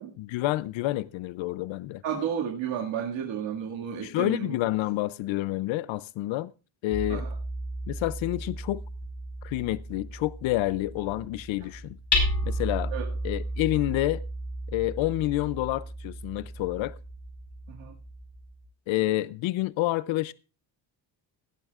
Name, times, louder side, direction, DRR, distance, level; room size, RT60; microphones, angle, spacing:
voice 1, 0.2-2.0 4.0-6.5 6.8-7.2 7.9-8.8 9.4-12.0 12.4-12.9 13.2-14.2 14.7-16.9 18.9-20.3, left 16 dB, 85° left, 0.5 m, -28 dB
voice 2, 2.0-4.6 7.1-7.3 12.9-13.1 17.7-17.9, right 8 dB, 75° right, 2.1 m, -32 dB
Hammer, 6.9-18.6, equal, 35° left, 4.6 m, -34 dB
17.5 x 12.5 x 2.4 m
cardioid pair, 165°, 45 cm